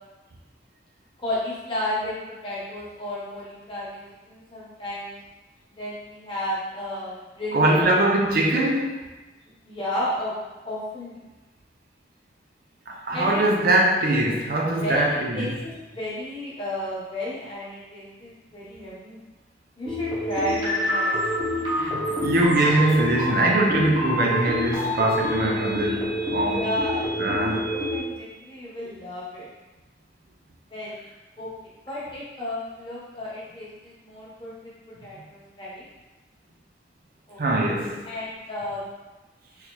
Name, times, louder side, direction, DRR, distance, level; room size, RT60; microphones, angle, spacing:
voice 1, 1.2-4.0 4.3-5.1 5.7-7.9 9.4-10.3 10.6-11.2 13.1-13.4 14.8-19.2 19.8-21.2 26.5-29.5 30.7-30.9 31.4-34.7 35.0-35.8 37.3-37.4 38.0-38.9, left 1 dB, 25° left, -7 dB, 1.0 m, -33 dB
voice 2, 7.5-9.1 12.9-15.6 21.7-26.6 27.2-27.7 37.4-38.0, right 1 dB, 50° right, -1 dB, 0.5 m, -22 dB
sound 1, 19.9-28.0, equal, 25° right, 0.9 m, -27 dB
3.6 x 2.9 x 3.0 m, 1.1 s
head